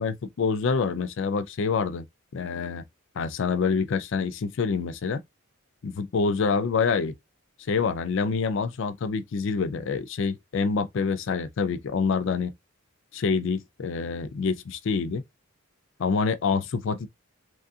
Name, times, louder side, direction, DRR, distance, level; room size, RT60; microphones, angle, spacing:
voice 1, 0.0-2.1 2.3-2.8 3.2-5.2 5.8-7.1 7.7-12.5 13.1-15.2 16.0-17.1, left 5 dB, 60° left, 0.4 m, -26 dB
3.1 x 2.4 x 2.6 m
head